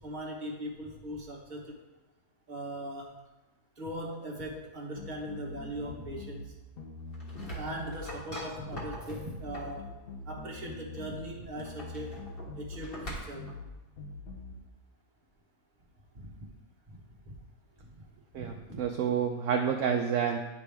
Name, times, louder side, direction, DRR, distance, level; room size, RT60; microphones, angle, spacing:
voice 1, 0.0-1.8 2.5-3.2 3.8-6.5 7.5-9.9 10.2-12.2 12.6-13.5 16.1-16.3 16.9-17.0 17.8-17.9 18.3-18.8, right 1 dB, 35° right, -1 dB, 1.2 m, -40 dB
sound 1, 5.0-6.5 6.8-8.0 8.6-8.9 9.2-11.3 11.6-12.8 13.4-13.7 14.0-14.6, left 2 dB, 70° left, 1.3 m, -43 dB
sound 2, 7.0-9.8 11.4-13.6, equal, 40° left, 1.5 m, -43 dB
voice 2, 18.3-20.4, right 7 dB, 65° right, 3 dB, 0.8 m, -29 dB
9.8 x 4.9 x 3.4 m, 1.1 s
omnidirectional pair, 1.6 m